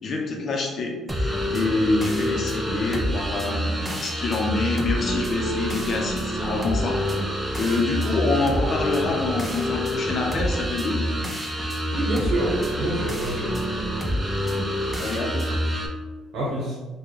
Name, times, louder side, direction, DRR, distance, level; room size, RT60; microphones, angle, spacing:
voice 1, 0.0-11.0 15.0-15.6, left 3 dB, 45° left, 1 dB, 0.7 m, -26 dB
sound 1, 1.1-15.9, equal, 10° right, 0.6 m, -27 dB
voice 2, 11.9-13.6 16.3-16.8, right 1 dB, 70° right, -6 dB, 0.9 m, -27 dB
3.6 x 2.3 x 3.2 m, 1.3 s
cardioid pair, 90°, 0 cm